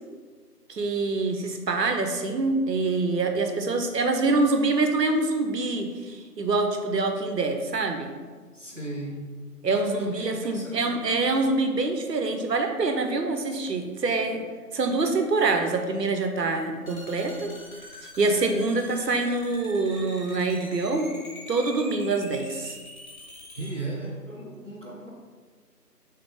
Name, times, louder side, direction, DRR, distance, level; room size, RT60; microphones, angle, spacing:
voice 1, 0.7-8.1 9.6-14.5 14.7-17.5 18.0-21.1 21.5-22.7, right 3 dB, 90° right, 5 dB, 0.7 m, -25 dB
voice 2, 8.5-9.3 9.7-11.0 23.6-25.1, right 2 dB, 50° right, -2 dB, 0.6 m, -36 dB
sound 1, 16.9-23.7, left 1 dB, 60° left, 0.7 m, -44 dB
3.5 x 3.3 x 3.2 m, 1.5 s
figure-of-eight pair, 170°, 48 cm